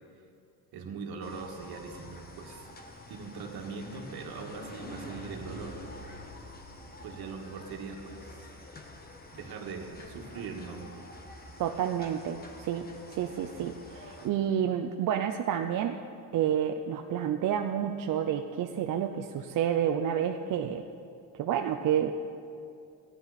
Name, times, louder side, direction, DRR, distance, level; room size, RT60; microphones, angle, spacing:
voice 1, 0.7-2.6 3.1-5.8 7.0-8.4 9.3-10.9, right 4 dB, 75° right, 2 dB, 1.7 m, -41 dB
sound 1, 1.2-14.3, left 1 dB, 25° left, 1.1 m, -47 dB
voice 2, 11.6-16.0 16.3-20.8 21.4-22.1, right 9 dB, 55° right, 5 dB, 0.6 m, -29 dB
15.5 x 10.5 x 4.1 m, 2.6 s
cardioid pair, 135°, 38 cm